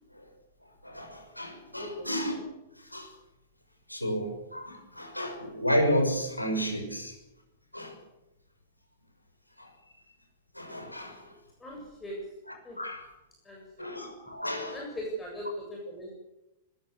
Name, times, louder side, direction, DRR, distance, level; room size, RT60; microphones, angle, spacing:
voice 1, 0.8-2.4 2.8-3.1 3.9-7.2 7.7-7.9 9.6-9.7 10.5-11.3 12.5-13.1 13.8-14.8, equal, 85° left, 4 dB, 6.3 m, -32 dB
voice 2, 1.8-2.1 11.6-12.4 12.6-12.8 13.4-13.9 14.7-16.1, equal, 10° left, -2 dB, 7.7 m, -39 dB
21.0 x 20.0 x 8.4 m, 0.96 s
figure-of-eight pair, 100°, 0 cm